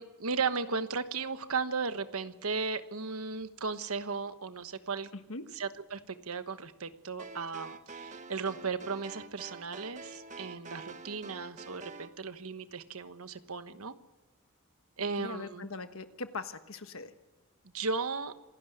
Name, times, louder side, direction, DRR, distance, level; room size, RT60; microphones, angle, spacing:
voice 1, 0.0-5.1 5.6-13.9 15.0-15.7 17.7-18.3, right 4 dB, 80° right, 11 dB, 1.2 m, -36 dB
sound 1, 7.2-12.1, right 3 dB, 35° right, 1.2 m, -47 dB
voice 2, 15.2-17.1, left 3 dB, 70° left, 9 dB, 1.5 m, -40 dB
26.5 x 12.5 x 9.2 m, 1.2 s
head